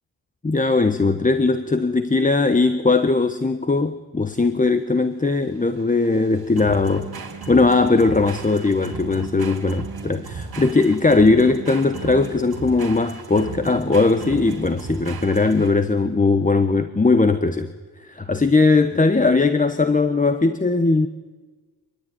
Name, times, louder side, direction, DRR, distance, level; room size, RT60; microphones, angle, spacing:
voice 1, 0.4-7.1 7.5-17.7 18.0-21.1, left 3 dB, 20° left, 10 dB, 1.2 m, -19 dB
sound 1, 4.3-15.9, right 4 dB, 65° right, 3.6 m, -35 dB
26.0 x 20.5 x 9.6 m, 1.3 s
cardioid pair, 95°, 39 cm